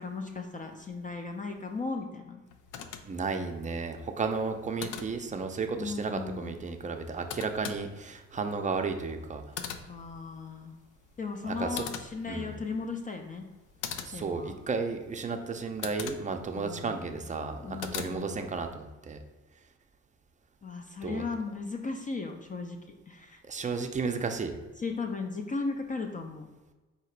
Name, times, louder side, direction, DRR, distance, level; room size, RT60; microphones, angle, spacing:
voice 1, 0.0-2.4 5.7-6.5 9.9-10.7 11.2-13.5 14.1-14.6 16.5-17.2 17.6-18.5 20.6-23.4 24.8-26.5, left 4 dB, 25° left, 3 dB, 0.4 m, -36 dB
sound 1, 2.5-18.7, left 8 dB, 80° left, 0.5 m, -44 dB
voice 2, 3.0-9.4 11.4-11.9 12.3-12.5 14.0-19.2 21.0-21.3 23.4-24.6, right 4 dB, 25° right, 5 dB, 0.5 m, -33 dB
3.9 x 2.9 x 4.5 m, 1.2 s
cardioid pair, 90°, 30 cm